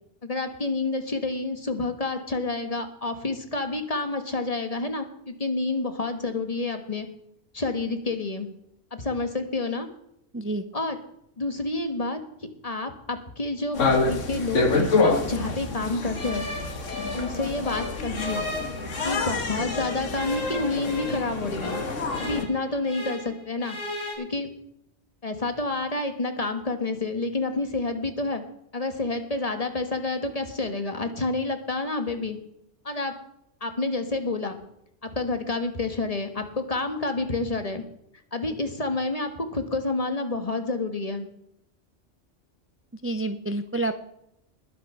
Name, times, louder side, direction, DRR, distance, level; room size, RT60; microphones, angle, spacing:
voice 1, 0.2-7.1 7.5-8.5 8.9-9.9 10.7-11.0 11.4-12.2 12.6-16.4 17.1-18.4 19.0-21.8 22.2-23.8 24.2-24.5 25.2-28.4 28.7-32.4 32.8-33.2 33.6-34.6 35.0-37.8 38.3-41.2, left 3 dB, 30° left, 7 dB, 1.4 m, -29 dB
sound 1, 13.7-22.4, left 3 dB, 90° left, 1.7 m, -27 dB
sound 2, 16.1-19.3 19.7-23.3 23.6-24.1, left 1 dB, 50° left, 4.1 m, -36 dB
voice 2, 43.0-43.9, right 2 dB, 15° right, 9 dB, 0.4 m, -28 dB
20.5 x 6.8 x 5.6 m, 0.76 s
omnidirectional pair, 1.3 m